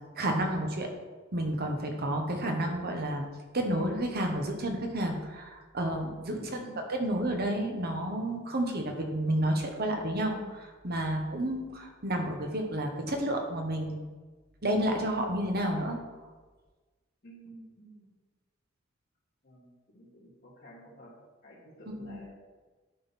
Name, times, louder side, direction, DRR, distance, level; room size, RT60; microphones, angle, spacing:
voice 1, 0.2-0.9 1.3-3.2 3.5-6.4 6.6-14.0 14.6-16.0 22.0-22.2, right 1 dB, 50° right, 3 dB, 1.1 m, -30 dB
voice 2, 6.3-6.8 17.2-18.1 19.4-21.1 21.4-22.3, right 1 dB, 50° left, -13 dB, 2.3 m, -51 dB
11.5 x 4.0 x 4.1 m, 1.3 s
head